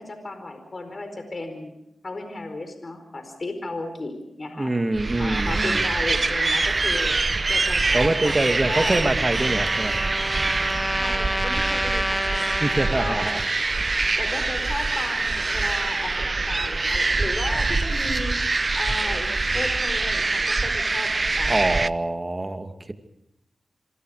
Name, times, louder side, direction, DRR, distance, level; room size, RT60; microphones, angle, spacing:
voice 1, 0.0-1.7 2.0-4.7 5.2-7.2 7.5-8.9 11.0-13.2 14.2-18.4 18.7-19.3 19.5-21.7, left 2 dB, 45° left, 7 dB, 4.6 m, -34 dB
voice 2, 4.5-5.9 7.9-10.0 12.6-13.4 13.8-13.9 21.5-22.9, right 2 dB, 30° right, 6 dB, 2.5 m, -25 dB
sound 1, 4.9-21.9, right 3 dB, 45° right, 0.7 m, -24 dB
Trumpet, 8.8-13.5, equal, ahead, 2.0 m, -29 dB
27.0 x 23.5 x 5.1 m, 0.83 s
cardioid pair, 50°, 0 cm